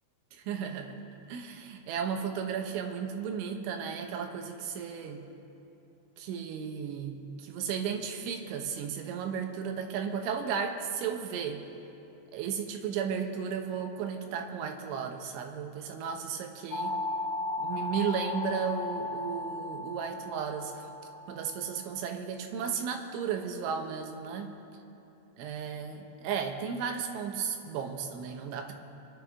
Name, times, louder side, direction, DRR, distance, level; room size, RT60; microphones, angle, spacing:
voice 1, 0.3-1.0 1.3-5.2 6.2-11.6 12.3-16.9 17.6-20.8 21.3-24.5 25.4-28.7, right 7 dB, 90° right, 4 dB, 3.4 m, -34 dB
sound 1, 16.7-22.1, left 2 dB, 75° left, 2.2 m, -36 dB
27.5 x 11.0 x 3.5 m, 2.8 s
omnidirectional pair, 5.3 m